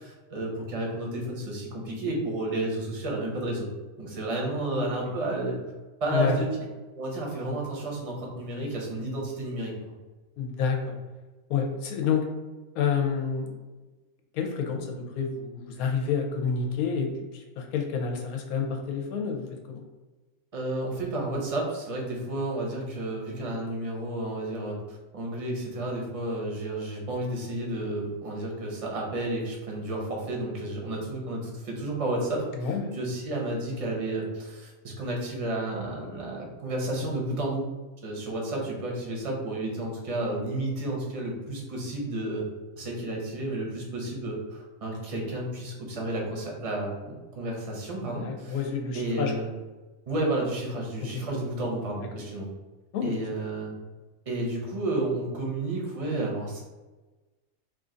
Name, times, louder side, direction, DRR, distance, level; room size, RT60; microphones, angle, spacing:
voice 1, 0.0-3.7 4.0-5.6 6.0-6.5 6.9-9.7 20.5-37.7 38.0-42.5 42.8-48.7 48.9-49.5 50.1-52.5 53.0-53.7 54.3-56.6, right 1 dB, 35° right, -2 dB, 0.6 m, -31 dB
voice 2, 10.4-10.9 11.5-12.3 12.7-13.5 14.3-19.8 32.5-33.0 48.0-49.3 51.1-51.2 52.9-53.1, left 6 dB, 85° left, 2 dB, 1.1 m, -29 dB
3.1 x 2.5 x 3.7 m, 1.2 s
omnidirectional pair, 1.5 m